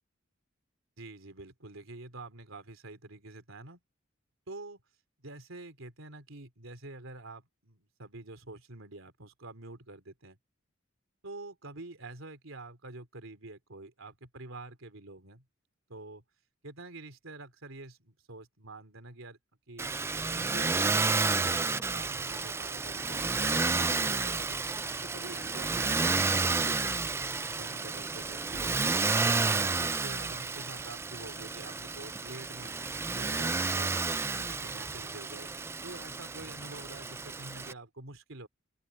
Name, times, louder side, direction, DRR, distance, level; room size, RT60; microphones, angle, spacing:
voice 1, 1.0-3.8 4.5-4.8 5.2-10.4 11.2-15.4 15.9-16.2 16.6-19.4 19.7-19.9 20.3-24.6 25.0-27.1 27.5-29.0 29.4-33.9 34.3-35.5 35.8-38.5, right 2 dB, 80° right, 3.2 m, -47 dB
Motor vehicle (road), 19.8-37.7, right 3 dB, 10° right, 0.3 m, -31 dB
open air
head